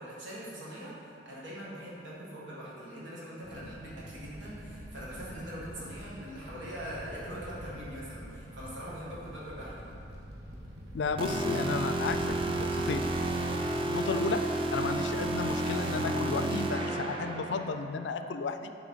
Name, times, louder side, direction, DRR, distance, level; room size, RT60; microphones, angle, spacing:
voice 1, 0.0-9.9, equal, 90° right, -7 dB, 1.6 m, -42 dB
Fire, 3.4-13.7, equal, 60° right, 1.2 m, -46 dB
voice 2, 10.9-13.0 13.9-18.8, left 4 dB, 70° left, 8 dB, 0.4 m, -33 dB
sound 1, 11.2-17.7, right 2 dB, 30° right, 0.5 m, -31 dB
8.0 x 3.5 x 5.5 m, 2.6 s
head